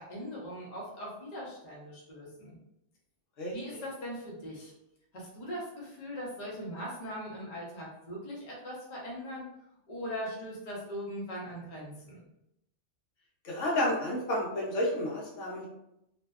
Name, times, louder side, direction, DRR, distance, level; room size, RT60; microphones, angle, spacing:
voice 1, 0.0-2.6 3.5-4.7 5.1-9.4 9.9-12.2, equal, 40° left, -4 dB, 0.7 m, -40 dB
voice 2, 13.4-15.7, left 1 dB, 75° left, -3 dB, 1.0 m, -30 dB
2.6 x 2.1 x 2.3 m, 0.82 s
omnidirectional pair, 1.3 m